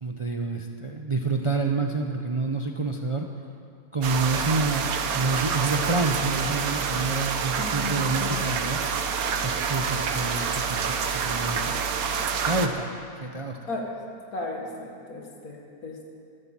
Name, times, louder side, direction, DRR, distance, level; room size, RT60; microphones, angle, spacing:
voice 1, 0.0-3.3 3.9-8.8 9.4-11.8 12.5-12.9 13.2-13.6, right 3 dB, 35° right, 3 dB, 0.5 m, -28 dB
sound 1, 4.0-12.7, right 6 dB, 75° right, 1.4 m, -27 dB
voice 2, 7.6-8.4 13.7-13.9 14.3-16.1, left 2 dB, 80° left, 0 dB, 2.3 m, -35 dB
13.5 x 12.0 x 7.3 m, 2.4 s
omnidirectional pair, 1.6 m